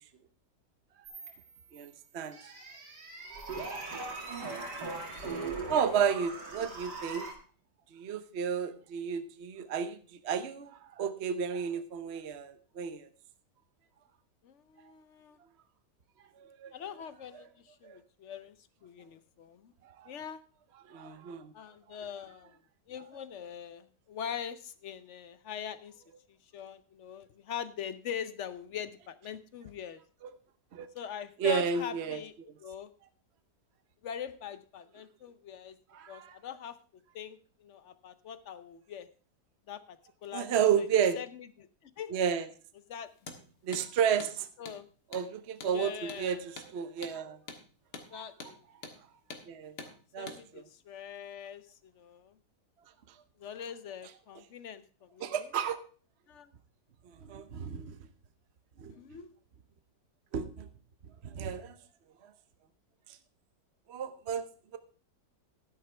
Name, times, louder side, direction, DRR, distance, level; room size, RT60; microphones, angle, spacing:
sound 1, 1.0-1.9 2.3-7.3, right 3 dB, 75° right, 2.8 m, -40 dB
voice 1, 1.7-2.5 4.3-4.5 5.7-7.3 7.9-13.1 16.4-16.8 17.8-18.0 20.0-20.1 20.9-21.5 30.2-30.3 30.7-30.9 31.4-32.2 35.9-36.4 40.3-41.2 42.1-42.5 43.6-44.5 45.1-47.4 48.1-48.2 49.5-49.7 50.1-50.6 55.2-55.8 57.2-58.0 58.8-58.9 60.3-60.7 61.2-61.8 63.9-64.5, right 7 dB, 50° right, 10 dB, 0.9 m, -32 dB
voice 2, 14.4-15.4 16.7-18.6 18.8-19.7 20.1-20.4 21.5-22.5 22.9-26.0 26.5-30.0 30.9-32.3 32.6-32.9 34.0-35.8 36.1-36.8 37.1-39.1 39.7-40.5 40.8-40.9 41.2-42.1 42.9-43.1 44.6-44.9 45.7-46.4 48.1-48.6 50.2-52.3 53.4-55.4 56.3-56.5 58.9-59.3, left 8 dB, 60° left, 14 dB, 0.8 m, -42 dB
Hammer, 43.2-43.4 43.7-43.9 44.2-44.3 44.7-44.8 45.1-45.3 45.6-45.8 46.1-46.2 46.6-46.7 47.0-47.2 47.5-47.6 47.9-48.1 48.4-48.6 48.8-49.0 49.3-49.5 49.8-49.9 50.3-50.4, left 4 dB, 75° left, 2.2 m, -45 dB
12.5 x 10.5 x 3.3 m, 0.40 s
omnidirectional pair, 1.8 m